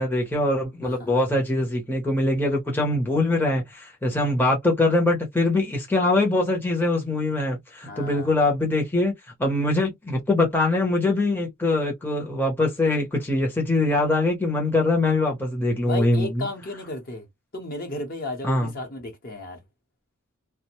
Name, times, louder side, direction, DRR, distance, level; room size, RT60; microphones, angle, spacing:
voice 1, 0.0-9.1 9.4-16.4 18.4-18.7, left 2 dB, 10° left, 0.7 m, -23 dB
voice 2, 7.9-8.3 15.8-17.3 17.5-19.6, left 2 dB, 40° left, 0.8 m, -33 dB
2.5 x 2.1 x 2.9 m
head